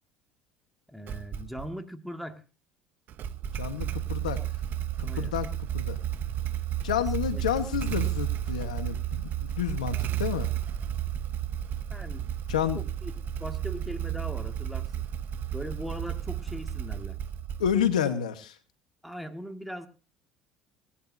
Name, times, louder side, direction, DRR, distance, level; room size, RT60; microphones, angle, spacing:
voice 1, 0.9-2.4 5.0-5.3 7.0-7.6 11.9-12.3 12.7-13.1 13.4-15.1 15.5-17.2 19.0-19.9, equal, ahead, 6 dB, 1.9 m, -40 dB
Motorcycle / Engine starting, 1.1-1.7 3.1-18.0, right 10 dB, 55° right, 0.8 m, -32 dB
voice 2, 3.6-4.4 5.0-5.5 5.7-6.0 6.8-10.5 12.5-12.8 17.6-18.5, left 9 dB, 90° left, 10 dB, 1.1 m, -29 dB
18.5 x 11.5 x 2.6 m, 0.36 s
hypercardioid pair, 70°, 4 cm